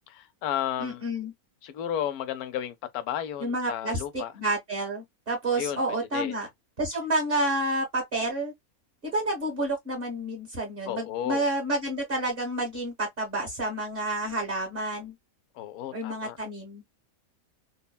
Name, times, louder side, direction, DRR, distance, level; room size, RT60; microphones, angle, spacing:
voice 1, 0.1-1.0 1.6-4.3 5.6-5.8 6.1-6.4 10.9-11.5 15.5-16.4, left 10 dB, 90° left, 1.1 m, -33 dB
voice 2, 0.8-1.3 3.4-4.0 4.3-6.5 6.8-8.5 9.0-15.1 15.9-16.8, right 1 dB, 40° right, 1.4 m, -29 dB
3.2 x 2.1 x 2.2 m
omnidirectional pair, 1.5 m